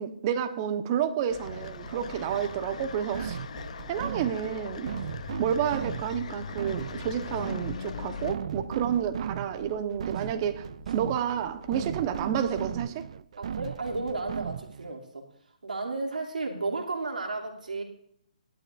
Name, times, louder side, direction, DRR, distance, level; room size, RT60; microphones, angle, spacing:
voice 1, 0.0-3.4 3.9-4.9 5.4-13.1, right 9 dB, 30° right, 1.1 m, -30 dB
sound 1, 1.3-8.3, left 6 dB, 55° left, 0.7 m, -40 dB
sound 2, 1.4-14.9, right 9 dB, 50° right, 0.3 m, -38 dB
sound 3, 4.0-12.8, left 2 dB, ahead, 6.1 m, -51 dB
voice 2, 13.4-15.2 15.6-17.8, right 3 dB, 80° right, 2.9 m, -33 dB
17.5 x 12.0 x 2.6 m
figure-of-eight pair, 145°, 4 cm